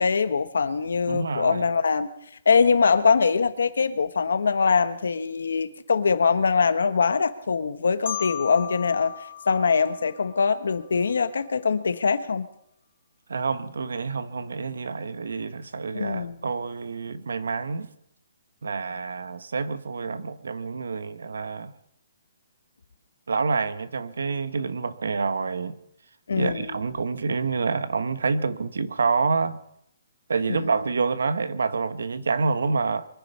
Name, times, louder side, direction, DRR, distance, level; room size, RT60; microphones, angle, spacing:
voice 1, 0.0-2.1 2.4-9.1 9.5-12.4 15.9-16.4 26.3-26.8 30.5-30.8, left 5 dB, 85° left, 11 dB, 1.3 m, -23 dB
voice 2, 1.1-1.6 13.3-17.9 18.6-21.7 23.3-25.8 26.3-29.6 30.3-33.0, right 4 dB, 90° right, 13 dB, 1.2 m, -27 dB
Marimba xylophone, 8.1-10.9, left 11 dB, 35° left, 0.6 m, -37 dB
23.5 x 10.5 x 5.5 m, 0.75 s
hypercardioid pair, 175°, 0 cm